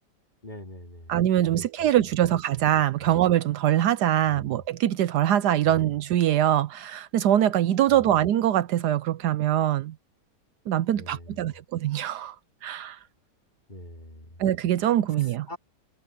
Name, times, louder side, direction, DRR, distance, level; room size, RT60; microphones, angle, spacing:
voice 1, 0.4-1.1 1.4-1.9 2.2-2.3 3.0-3.1 4.2-4.6 5.6-5.9 7.9-8.2 10.9-11.6 13.7-14.4 15.2-15.6, left 1 dB, 25° left, 3.6 m, -44 dB
voice 2, 1.1-9.9 10.7-12.3 12.6-13.0 14.4-15.5, right 11 dB, 75° right, 1.2 m, -23 dB
omnidirectional pair, 1.8 m